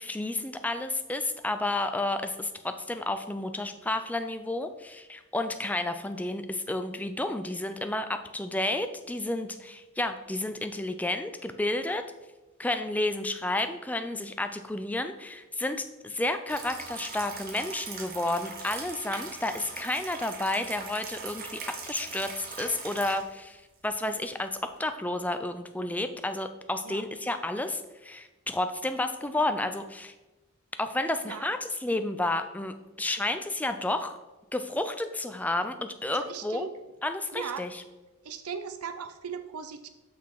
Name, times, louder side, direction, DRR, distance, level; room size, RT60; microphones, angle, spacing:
voice 1, 0.0-12.0 12.6-30.1 30.8-34.2 34.5-36.7 37.0-37.8, left 2 dB, 5° left, 8 dB, 0.3 m, -31 dB
sound 1, 16.5-23.3 23.8-23.9 24.3-24.5 24.8-24.9, right 4 dB, 40° right, 1.0 m, -41 dB
voice 2, 36.1-36.7 37.3-37.6 38.2-39.9, right 6 dB, 90° right, 9 dB, 0.5 m, -38 dB
5.9 x 5.8 x 4.7 m, 1.1 s
head